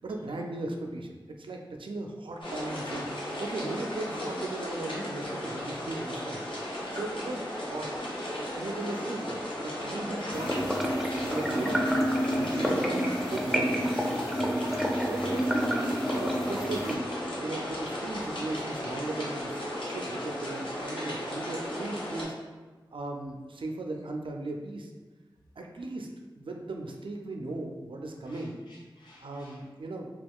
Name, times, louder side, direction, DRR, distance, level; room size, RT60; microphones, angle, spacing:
voice 1, 0.0-3.1 3.4-6.4 6.9-7.9 8.3-10.5 11.2-13.8 15.0-17.0 17.4-22.3 22.9-24.9 25.6-26.1 26.3-28.6 29.2-30.1, right 2 dB, 80° right, 2 dB, 0.4 m, -37 dB
sound 1, 2.4-22.2, left 1 dB, 80° left, 0.8 m, -36 dB
sound 2, 10.3-17.0, equal, ahead, 0.4 m, -29 dB
voice 2, 28.3-29.6, left 1 dB, 65° left, -4 dB, 0.4 m, -57 dB
2.9 x 2.3 x 3.5 m, 1.3 s
wide cardioid pair, 60°, 9 cm